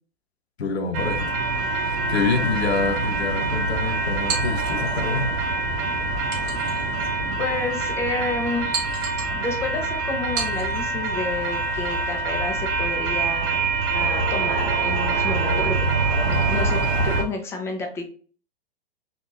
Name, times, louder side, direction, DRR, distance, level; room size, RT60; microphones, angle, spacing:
voice 1, 0.6-1.3 1.6-5.3, left 4 dB, 80° left, 0.7 m, -27 dB
sound 1, 0.9-17.2, right 3 dB, 60° right, 0.7 m, -25 dB
sound 2, 4.3-5.0 6.3-7.1 7.7-7.8 8.7-9.4 10.3-10.8, right 5 dB, 30° right, 0.9 m, -32 dB
voice 2, 7.4-8.9 9.3-13.7 13.9-15.8 16.2-18.0, left 3 dB, 10° left, 0.4 m, -30 dB
3.5 x 2.4 x 2.7 m
hypercardioid pair, 115°, 31 cm